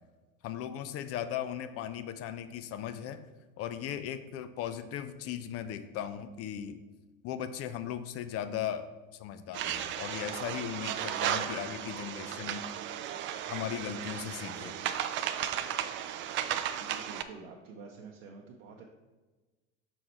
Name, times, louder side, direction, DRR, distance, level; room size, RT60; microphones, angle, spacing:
voice 1, 0.4-3.2 3.6-6.8 7.2-8.9 9.1-12.7 13.5-14.8, left 10 dB, 35° left, 11 dB, 0.5 m, -37 dB
sound 1, 9.5-17.2, right 10 dB, 30° right, 0.4 m, -35 dB
voice 2, 16.8-18.9, right 4 dB, 65° right, 0 dB, 0.8 m, -48 dB
5.8 x 4.2 x 4.4 m, 1.2 s
figure-of-eight pair, 75°, 40 cm